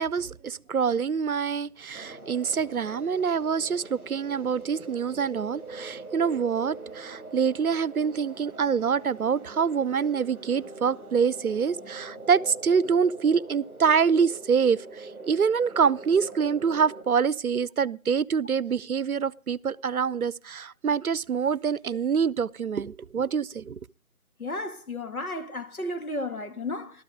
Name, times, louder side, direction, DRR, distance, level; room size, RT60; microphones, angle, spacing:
voice 1, 0.0-23.8, right 6 dB, 75° right, 0.7 m, -26 dB
sound 1, 1.9-17.0, right 2 dB, ahead, 1.9 m, -43 dB
voice 2, 24.4-27.0, left 2 dB, 80° left, 2.4 m, -33 dB
15.0 x 13.0 x 5.0 m
figure-of-eight pair, 170°, 43 cm